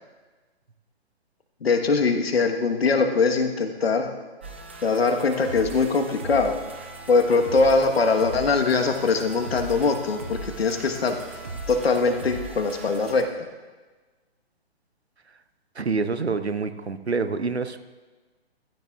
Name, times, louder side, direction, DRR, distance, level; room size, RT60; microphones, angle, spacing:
voice 1, 1.6-4.1 4.8-6.6 7.1-11.2 11.7-13.2, left 4 dB, 70° left, 4 dB, 1.4 m, -22 dB
sound 1, 4.4-13.2, right 2 dB, 10° right, 0.3 m, -38 dB
voice 2, 15.8-17.8, right 4 dB, 90° right, 10 dB, 0.8 m, -27 dB
15.0 x 14.5 x 2.4 m, 1.3 s
figure-of-eight pair, 130°, 31 cm